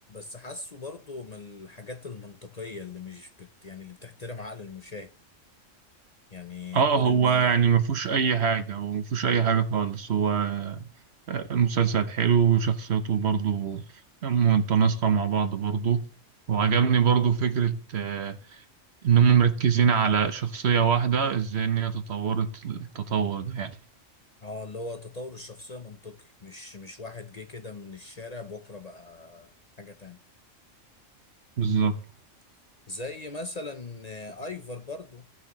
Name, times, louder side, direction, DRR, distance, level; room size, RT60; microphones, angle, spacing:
voice 1, 0.1-5.1 6.3-7.5 8.1-8.2 24.4-29.5 29.8-30.2 32.9-35.3, left 3 dB, 40° left, 0.8 m, -40 dB
voice 2, 6.7-10.8 11.3-13.8 14.2-16.1 16.5-18.6 19.0-23.8 31.6-32.0, right 7 dB, 60° right, 1.2 m, -23 dB
16.5 x 6.3 x 3.1 m
omnidirectional pair, 1.3 m